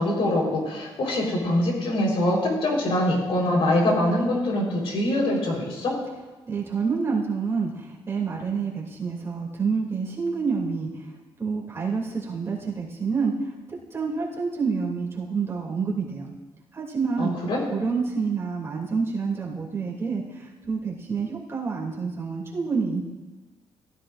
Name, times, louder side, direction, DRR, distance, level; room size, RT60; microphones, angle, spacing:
voice 1, 0.0-5.9 17.2-17.6, left 1 dB, 65° left, -1 dB, 4.2 m, -24 dB
voice 2, 6.4-11.1 11.4-16.3 16.7-17.4 17.7-23.0, right 5 dB, 25° right, -4 dB, 2.7 m, -28 dB
16.0 x 14.0 x 2.6 m, 1.2 s
cardioid pair, 130°, 10 cm